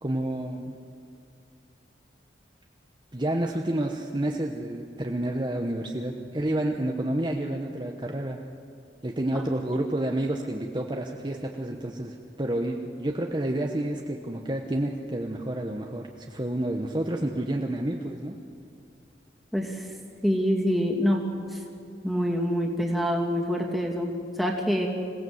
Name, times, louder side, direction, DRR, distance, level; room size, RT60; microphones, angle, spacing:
voice 1, 0.0-0.8 3.1-8.4 9.0-18.3, right 1 dB, 25° right, 2 dB, 1.0 m, -29 dB
voice 2, 19.5-19.8 20.2-21.3 22.0-24.9, equal, ahead, -1 dB, 2.6 m, -26 dB
26.5 x 17.5 x 7.9 m, 2.5 s
head